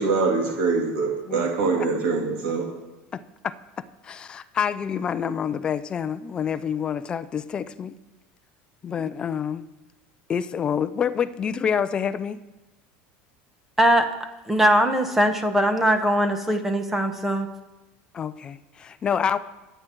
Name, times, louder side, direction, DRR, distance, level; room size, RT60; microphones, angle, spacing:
voice 1, 0.0-2.7, right 4 dB, 55° right, 2.6 m, -24 dB
voice 2, 3.1-3.5 4.0-7.9 8.8-9.7 10.3-12.4 18.1-19.4, left 7 dB, 20° left, 0.4 m, -27 dB
voice 3, 13.8-14.1 14.5-17.5, equal, 5° right, 0.9 m, -21 dB
24.5 x 8.9 x 4.5 m
cardioid pair, 180°, 5 cm